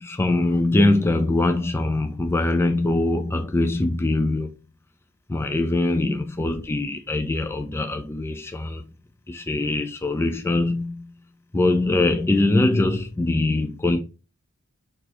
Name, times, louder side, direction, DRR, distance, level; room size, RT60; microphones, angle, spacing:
voice 1, 0.0-4.6 5.3-8.8 9.3-11.1 11.5-14.0, left 2 dB, 10° left, 0.3 m, -22 dB
4.7 x 2.5 x 4.1 m
head